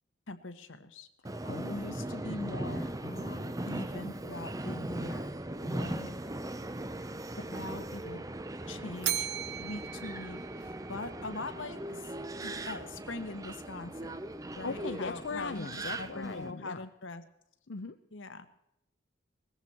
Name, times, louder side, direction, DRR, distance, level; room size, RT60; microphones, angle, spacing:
voice 1, 0.3-1.1 1.7-2.9 3.7-5.4 5.6-6.1 7.4-8.3 8.7-9.3 9.6-12.1 12.4-14.2 14.6-17.2 18.1-18.5, left 2 dB, 90° left, 9 dB, 1.4 m, -42 dB
Subway metro underground, 1.2-16.5, right 1 dB, 20° right, 0.6 m, -39 dB
voice 2, 1.4-1.9 3.0-3.7 14.6-16.8 17.7-18.0, left 4 dB, 70° left, 9 dB, 0.7 m, -39 dB
Bell, 9.0-11.2, right 12 dB, 55° right, 0.6 m, -37 dB
19.5 x 15.5 x 4.4 m, 0.79 s
head